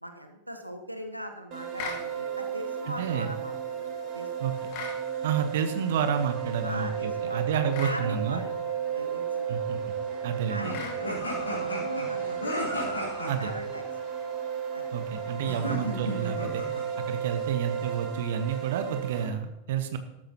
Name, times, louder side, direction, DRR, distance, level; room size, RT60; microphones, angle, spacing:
voice 1, 0.0-3.5 4.1-4.3 6.6-8.5 8.9-9.8 10.5-12.4 13.4-13.8 14.7-14.9 15.6-15.8, equal, 90° right, 6 dB, 1.1 m, -40 dB
sound 1, 1.5-19.2, right 7 dB, 40° right, 4.1 m, -34 dB
sound 2, 1.8-2.1 4.7-5.0 7.7-8.0 10.7-11.0, left 4 dB, 45° left, 2.4 m, -36 dB
voice 2, 2.9-3.3 4.4-4.5 5.2-8.4 9.5-9.8 10.2-10.7 13.3-13.5 14.9-16.6 17.1-20.0, right 8 dB, 55° right, 9 dB, 1.0 m, -29 dB
sound 3, 10.6-13.5 15.4-16.8, left 1 dB, 80° left, 3.7 m, -34 dB
13.5 x 13.0 x 3.0 m, 1.0 s
figure-of-eight pair, 90°, 0 cm